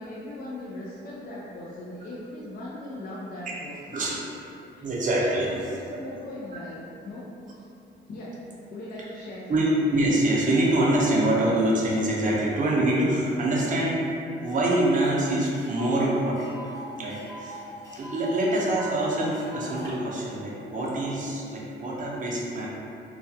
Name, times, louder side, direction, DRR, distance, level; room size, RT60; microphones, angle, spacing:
voice 1, 0.0-4.0 4.7-4.9 5.3-6.8 7.0-7.7 8.1-9.7, left 1 dB, 45° left, -7 dB, 0.4 m, -39 dB
voice 2, 4.8-5.5 9.5-14.0 14.4-16.5 17.0-17.6 17.9-22.7, right 1 dB, 40° right, -5 dB, 0.6 m, -25 dB
Tick, 15.0-15.1 15.4-19.9, right 1 dB, 15° left, 0.8 m, -42 dB
2.3 x 2.2 x 2.7 m, 2.6 s
cardioid pair, 90°, 20 cm